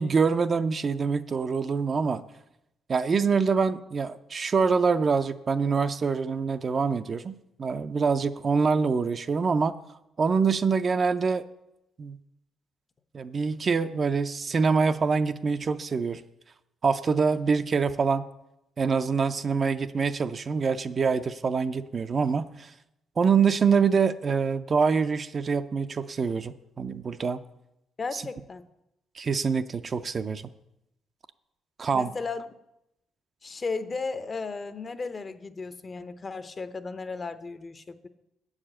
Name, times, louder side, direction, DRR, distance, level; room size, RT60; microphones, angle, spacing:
voice 1, 0.0-2.2 2.9-9.8 10.2-11.5 12.0-12.2 13.1-16.2 16.8-18.3 18.8-22.7 23.2-27.4 28.1-28.2 29.2-30.4 31.8-32.1, right 5 dB, 40° right, 11 dB, 0.4 m, -25 dB
voice 2, 28.0-28.6 31.9-32.5 33.4-38.1, left 4 dB, 35° left, 11 dB, 0.6 m, -35 dB
8.3 x 4.9 x 7.4 m, 0.86 s
cardioid pair, 90°, 0 cm